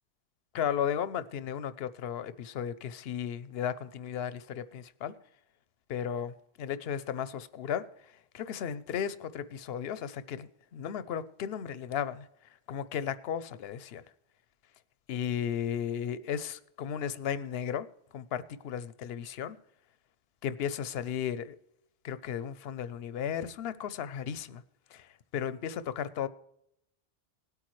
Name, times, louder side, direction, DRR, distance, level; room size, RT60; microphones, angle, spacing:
voice 1, 0.5-5.1 5.9-7.9 8.3-12.3 12.7-14.0 15.1-17.9 18.1-19.6 20.4-21.6 22.0-24.6 24.9-26.3, left 8 dB, 65° left, 0.8 m, -35 dB
19.0 x 8.5 x 3.1 m
omnidirectional pair, 1.1 m